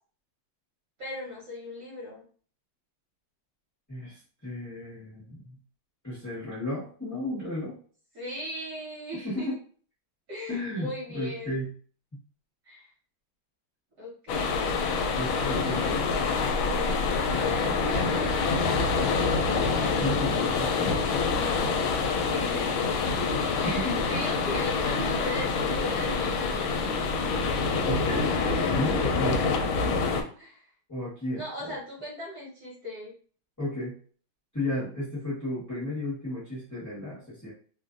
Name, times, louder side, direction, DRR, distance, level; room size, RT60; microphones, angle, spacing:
voice 1, 1.0-2.2 8.1-9.6 10.3-11.6 12.6-12.9 14.0-14.6 16.6-18.6 22.2-23.2 23.5-26.9 29.2-29.6 30.4-30.6 31.3-33.1, left 1 dB, 55° right, -6 dB, 1.5 m, -38 dB
voice 2, 3.9-5.6 6.0-7.8 9.1-9.5 10.5-11.7 15.1-16.4 20.0-21.0 23.6-24.0 27.8-29.8 30.9-31.8 33.6-34.0 34.5-37.5, left 1 dB, 15° left, -10 dB, 0.8 m, -33 dB
sound 1, 14.3-30.2, left 4 dB, 80° left, 1.3 m, -26 dB
3.2 x 2.5 x 2.4 m, 0.43 s
omnidirectional pair, 2.2 m